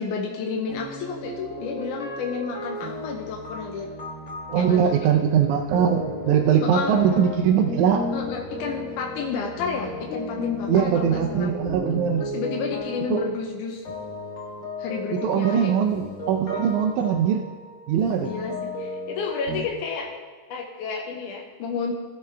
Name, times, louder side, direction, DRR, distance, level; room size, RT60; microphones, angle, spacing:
voice 1, 0.0-3.9 4.6-5.2 6.6-6.9 8.1-11.5 12.2-13.8 14.8-15.7 18.2-20.1 20.5-21.9, left 5 dB, 80° left, 1 dB, 2.3 m, -31 dB
sound 1, 0.7-19.6, left 2 dB, 60° left, 0.7 m, -35 dB
voice 2, 4.5-8.1 10.7-12.2 13.1-13.2 15.1-17.5 17.9-18.3, right 8 dB, 80° right, 2 dB, 2.0 m, -21 dB
16.0 x 6.8 x 3.3 m, 1.5 s
omnidirectional pair, 3.6 m